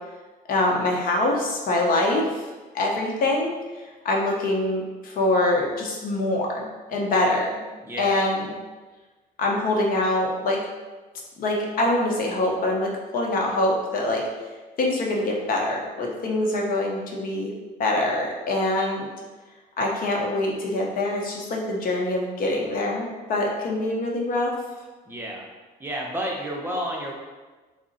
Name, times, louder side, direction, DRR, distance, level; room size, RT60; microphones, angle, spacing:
voice 1, 0.5-2.4 2.7-3.5 4.0-7.6 8.0-8.5 9.4-10.6 11.4-14.2 14.8-17.5 17.8-19.1 19.8-24.5, left 2 dB, 55° left, -1 dB, 0.7 m, -24 dB
voice 2, 7.8-8.2 25.1-25.5 25.8-27.1, equal, 15° right, -2 dB, 0.7 m, -30 dB
3.6 x 2.1 x 4.0 m, 1.3 s
cardioid pair, 110°, 17 cm